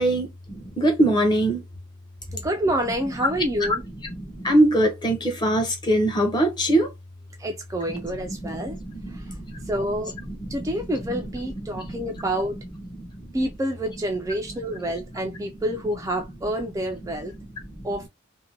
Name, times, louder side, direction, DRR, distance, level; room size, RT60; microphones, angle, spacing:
voice 1, 0.0-1.7 3.3-6.9 7.9-12.3 12.9-13.4 14.5-14.8 15.2-15.5 16.6-17.9, right 1 dB, 20° left, 0.7 m, -25 dB
voice 2, 2.3-3.8 7.4-8.8 9.1-9.4 9.6-10.1 10.5-12.6 13.3-17.3 17.8-18.1, right 1 dB, 15° right, 0.3 m, -28 dB
2.6 x 2.1 x 2.8 m
head